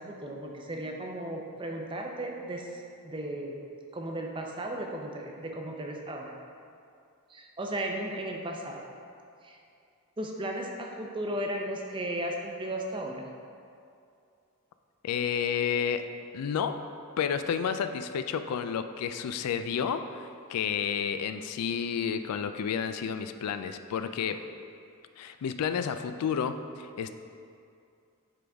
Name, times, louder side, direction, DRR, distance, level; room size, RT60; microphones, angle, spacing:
voice 1, 0.0-3.6 3.9-6.3 7.3-8.9 9.4-9.6 10.2-13.3, right 1 dB, 20° right, 1 dB, 0.5 m, -35 dB
voice 2, 15.0-16.0 16.3-16.8 17.2-24.4 25.2-27.1, left 7 dB, 90° left, 9 dB, 0.3 m, -31 dB
8.1 x 3.9 x 3.4 m, 2.4 s
head